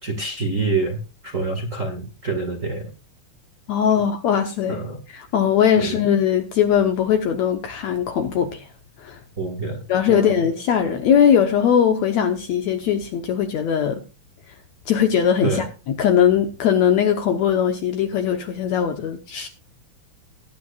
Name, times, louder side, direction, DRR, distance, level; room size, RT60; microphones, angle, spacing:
voice 1, 0.0-2.9 4.7-5.0 5.7-6.0 9.4-10.5 15.4-15.7, right 3 dB, 30° right, 1.5 m, -27 dB
voice 2, 3.7-4.8 5.1-8.7 9.0-9.2 9.9-14.0 14.9-15.7 16.0-19.5, left 8 dB, 70° left, 1.9 m, -20 dB
20.0 x 9.4 x 2.4 m
omnidirectional pair, 4.1 m